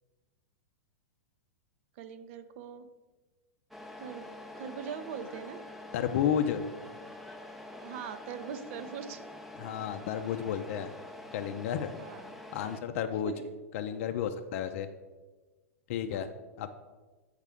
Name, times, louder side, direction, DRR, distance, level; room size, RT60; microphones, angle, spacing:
voice 1, 2.0-2.9 4.0-5.7 7.8-9.2 12.0-12.3 13.3-13.5 16.1-16.4, right 7 dB, 55° right, 10 dB, 0.6 m, -42 dB
Truck, 3.7-12.8, left 1 dB, ahead, 0.6 m, -46 dB
voice 2, 5.9-6.6 9.6-10.9 11.3-11.9 12.5-13.3 13.7-14.9 15.9-16.3 16.6-16.7, left 9 dB, 60° left, 7 dB, 0.5 m, -31 dB
8.1 x 4.8 x 3.5 m, 1.3 s
hypercardioid pair, 110°, 8 cm